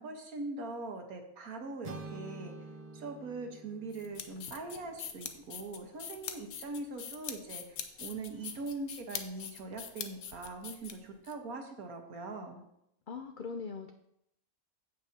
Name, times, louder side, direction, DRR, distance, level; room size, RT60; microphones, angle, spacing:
voice 1, 0.0-2.5 2.9-12.7, right 3 dB, 75° right, 4 dB, 1.6 m, -42 dB
sound 1, 1.8-5.9, right 3 dB, 35° right, 0.7 m, -48 dB
sound 2, 3.9-11.3, left 7 dB, 60° left, 0.9 m, -43 dB
voice 2, 13.1-13.9, left 5 dB, 80° left, 6 dB, 0.4 m, -40 dB
15.5 x 5.6 x 2.8 m, 0.78 s
omnidirectional pair, 1.5 m